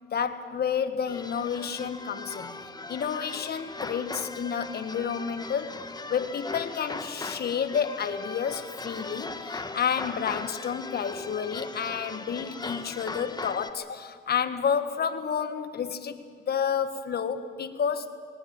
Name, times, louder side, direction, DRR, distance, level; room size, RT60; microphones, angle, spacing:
voice 1, 0.1-2.5 2.9-5.8 6.1-16.2 16.5-18.1, left 7 dB, 55° left, 10 dB, 1.6 m, -30 dB
sound 1, 1.1-13.7, left 3 dB, 20° left, 1.3 m, -39 dB
21.0 x 18.5 x 9.0 m, 2.2 s
cardioid pair, 90°, 20 cm